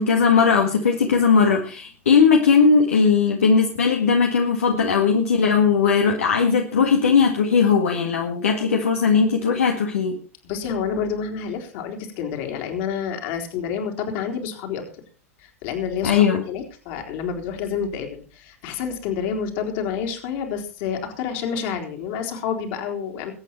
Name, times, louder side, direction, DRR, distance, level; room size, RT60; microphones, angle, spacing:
voice 1, 0.0-10.2 16.0-16.4, left 5 dB, 65° left, 2 dB, 1.9 m, -18 dB
voice 2, 10.4-14.8 15.4-23.3, left 7 dB, 45° left, 4 dB, 3.9 m, -29 dB
22.0 x 8.9 x 4.5 m, 0.36 s
figure-of-eight pair, 90°, 8 cm